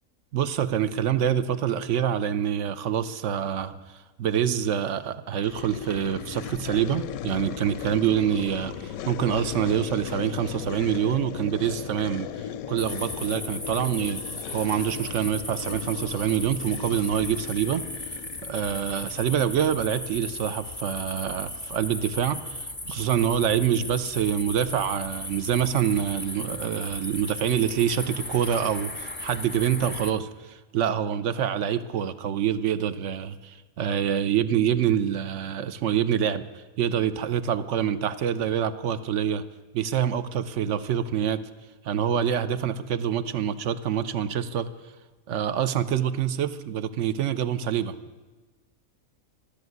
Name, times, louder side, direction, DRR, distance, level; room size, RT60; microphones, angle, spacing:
voice 1, 0.3-3.7 4.2-14.2 14.5-17.8 18.4-39.4 39.7-41.4 41.8-44.7 45.3-47.9, right 9 dB, 65° right, 13 dB, 0.9 m, -26 dB
sound 1, 5.4-19.3, left 9 dB, 85° left, 1.0 m, -37 dB
sound 2, 12.8-30.1, left 1 dB, 10° left, 0.7 m, -37 dB
13.5 x 6.8 x 9.3 m, 1.2 s
omnidirectional pair, 1.4 m